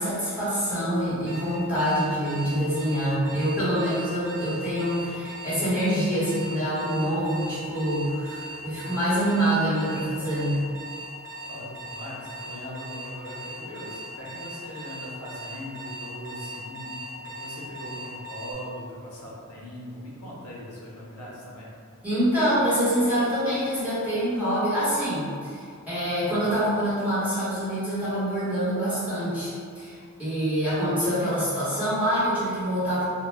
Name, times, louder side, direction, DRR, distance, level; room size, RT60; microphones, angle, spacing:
voice 1, 0.0-10.6 22.0-33.0, equal, 5° right, -13 dB, 0.9 m, -26 dB
Alarm, 1.3-18.5, right 1 dB, 60° right, 0.5 m, -39 dB
voice 2, 11.5-21.7, equal, 75° left, -5 dB, 0.6 m, -40 dB
2.1 x 2.1 x 3.1 m, 2.2 s
head